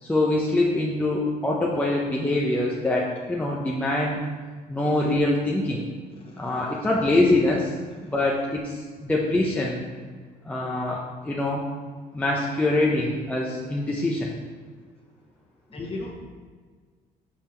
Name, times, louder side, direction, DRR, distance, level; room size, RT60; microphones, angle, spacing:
voice 1, 0.0-4.2 4.7-5.8 6.4-7.7 8.0-8.8 9.1-9.8 10.4-11.6 12.1-14.3, left 2 dB, 10° left, -3 dB, 0.7 m, -24 dB
voice 2, 6.2-6.9 7.9-8.1 15.7-16.1, left 2 dB, 35° left, -2 dB, 1.5 m, -38 dB
5.6 x 4.7 x 4.5 m, 1.5 s
cardioid pair, 110°, 17 cm